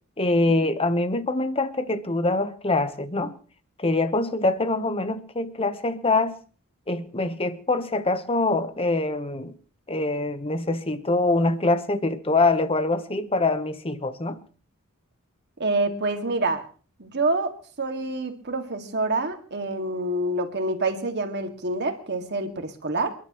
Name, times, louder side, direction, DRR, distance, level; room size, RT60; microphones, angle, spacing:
voice 1, 0.2-3.3 3.8-6.4 6.9-9.5 9.9-14.4, left 2 dB, 25° left, 1.0 m, -24 dB
voice 2, 15.6-16.6 17.0-23.1, right 2 dB, 50° right, 2.0 m, -27 dB
29.0 x 11.5 x 3.1 m
head